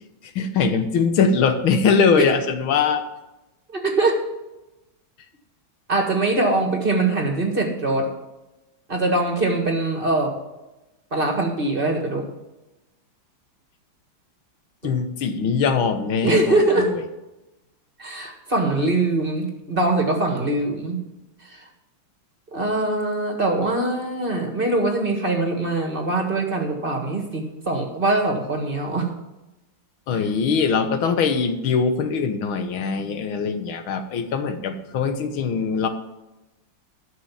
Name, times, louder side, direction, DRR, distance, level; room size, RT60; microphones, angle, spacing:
voice 1, 0.2-3.0 14.8-17.0 30.1-35.9, left 5 dB, 85° left, 8 dB, 1.9 m, -22 dB
voice 2, 3.7-4.2 5.9-8.1 8.9-10.4 11.1-12.3 14.8-14.9 16.2-16.9 18.0-21.0 21.4-21.7 22.5-29.1, right 2 dB, 30° right, 3 dB, 1.7 m, -22 dB
12.5 x 6.4 x 7.3 m, 1.0 s
omnidirectional pair, 2.2 m